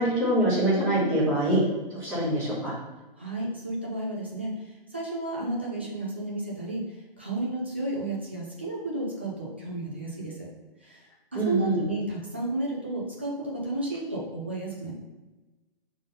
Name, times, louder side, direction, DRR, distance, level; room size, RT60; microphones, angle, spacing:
voice 1, 0.0-1.6 1.9-2.7 11.3-11.8, right 1 dB, 5° left, -12 dB, 1.8 m, -24 dB
voice 2, 3.2-4.5 4.9-6.8 7.2-10.3 10.8-11.0 11.3-14.9, right 2 dB, 10° right, -5 dB, 0.4 m, -32 dB
5.1 x 3.7 x 5.5 m, 1.1 s
hypercardioid pair, 175°, 29 cm